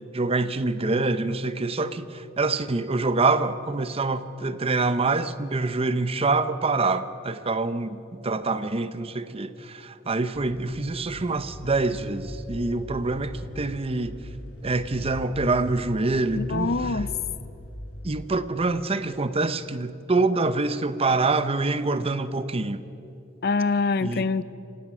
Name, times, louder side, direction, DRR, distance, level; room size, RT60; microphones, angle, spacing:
voice 1, 0.1-14.2 14.6-16.9 18.0-22.8 24.0-24.3, right 3 dB, 30° right, 0.7 m, -26 dB
sound 1, 10.3-18.7, equal, 70° left, 4.2 m, -40 dB
voice 2, 16.3-17.1 23.4-24.4, left 3 dB, 55° left, 0.6 m, -24 dB
28.0 x 17.0 x 6.2 m
head